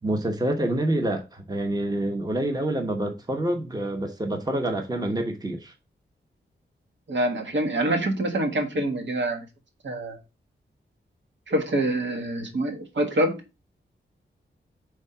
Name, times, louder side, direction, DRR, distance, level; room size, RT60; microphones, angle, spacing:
voice 1, 0.0-5.7, right 1 dB, 20° right, 1.0 m, -27 dB
voice 2, 7.1-9.4 9.8-10.2 11.5-13.4, right 1 dB, 70° right, 1.5 m, -26 dB
5.2 x 3.6 x 5.5 m
wide cardioid pair, 105°, 20 cm